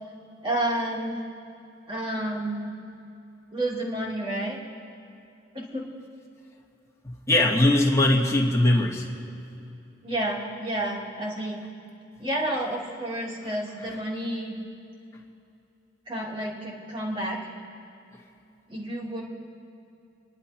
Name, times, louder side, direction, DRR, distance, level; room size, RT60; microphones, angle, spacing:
voice 1, 0.4-1.2 1.9-2.7 3.5-4.6 5.5-5.9 10.0-11.6 12.2-14.5 16.1-17.4 18.7-19.2, right 1 dB, 30° right, -3 dB, 3.0 m, -30 dB
voice 2, 7.0-9.1, left 1 dB, 15° left, -2 dB, 2.1 m, -21 dB
29.5 x 11.0 x 4.4 m, 2.7 s
head